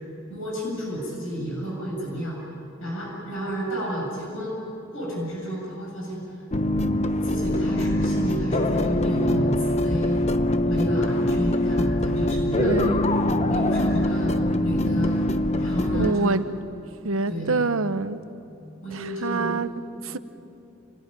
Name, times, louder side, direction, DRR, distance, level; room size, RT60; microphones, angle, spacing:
voice 1, 0.3-2.4 2.8-4.6 4.9-6.2 7.2-10.2 10.7-12.8 13.5-14.3 14.6-16.5 17.3-17.6 18.8-19.6, equal, 70° left, -2 dB, 7.6 m, -31 dB
sound 1, 6.5-16.1, left 1 dB, 30° left, 0.8 m, -23 dB
voice 2, 12.6-13.0 15.9-16.4 17.0-18.2 18.9-19.7 20.0-20.2, right 3 dB, 85° right, 11 dB, 1.0 m, -25 dB
28.5 x 20.0 x 9.9 m, 2.9 s
head